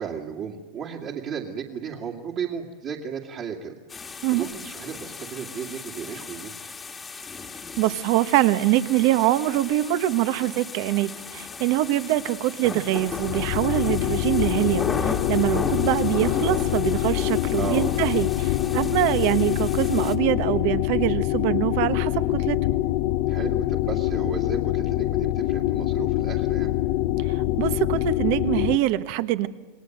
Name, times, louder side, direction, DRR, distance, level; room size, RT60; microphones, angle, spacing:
voice 1, 0.0-3.8 4.3-6.7 17.5-18.0 23.3-26.7, right 7 dB, 35° right, -1 dB, 2.3 m, -34 dB
sound 1, 3.9-20.2, left 4 dB, 15° left, 1.6 m, -35 dB
voice 2, 7.8-22.6 27.3-29.5, right 15 dB, 55° right, 12 dB, 1.2 m, -24 dB
sound 2, 12.9-28.8, left 15 dB, 55° left, 0.7 m, -25 dB
28.0 x 21.0 x 7.9 m, 1.4 s
supercardioid pair, 155°, 0 cm